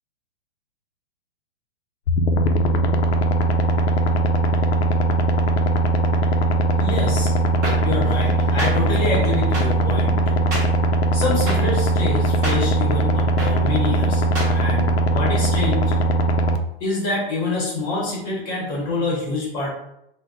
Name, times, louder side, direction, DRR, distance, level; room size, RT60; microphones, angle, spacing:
sound 1, 2.1-16.6, right 1 dB, 85° left, 0.5 m, -20 dB
voice 1, 6.8-7.3 7.8-10.4 11.1-14.2 14.5-15.9 16.8-19.7, left 2 dB, 15° left, -5 dB, 0.7 m, -26 dB
sound 2, 7.6-7.7 8.6-8.7 9.5-9.6 10.5-10.6 11.5-11.6 12.4-12.6 13.4-13.5 14.3-14.5, right 1 dB, 15° right, 0.5 m, -26 dB
2.7 x 2.1 x 3.7 m, 0.78 s
hypercardioid pair, 165°, 31 cm